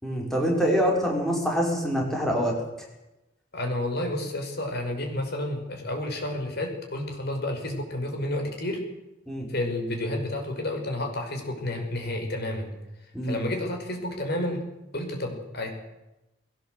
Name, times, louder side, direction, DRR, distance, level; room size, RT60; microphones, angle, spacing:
voice 1, 0.0-2.5 9.3-9.5 13.1-13.4, equal, ahead, -2 dB, 5.7 m, -25 dB
voice 2, 3.5-8.8 9.5-12.7 13.2-14.6 14.9-15.7, left 1 dB, 55° left, 3 dB, 5.6 m, -30 dB
21.5 x 18.0 x 7.9 m, 0.95 s
head